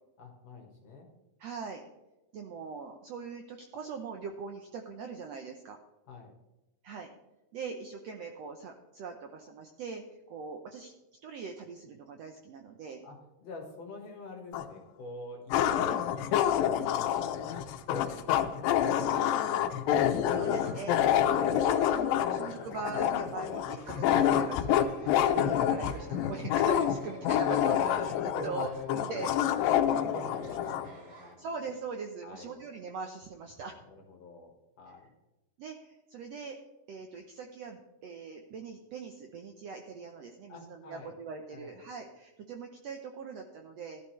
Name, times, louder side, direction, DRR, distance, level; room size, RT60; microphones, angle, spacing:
voice 1, 0.2-1.1 6.1-6.3 13.0-17.6 17.9-20.3 28.3-29.1 29.6-31.8 32.2-32.6 33.9-35.0 40.5-41.1 41.5-41.8, left 3 dB, 55° left, 1 dB, 2.5 m, -46 dB
voice 2, 1.4-1.8 2.3-5.8 6.8-7.1 7.5-10.9 11.2-13.0 20.3-21.0 21.4-28.7 29.1-29.3 31.4-33.8 35.6-36.6 36.9-44.0, right 5 dB, 80° right, 4 dB, 1.5 m, -41 dB
sound 1, 14.5-14.6 15.5-30.9, left 10 dB, 80° left, 2.4 m, -27 dB
Laughter, 20.4-31.3, right 2 dB, 45° right, 2.6 m, -52 dB
15.0 x 11.5 x 3.2 m, 1.0 s
omnidirectional pair, 4.0 m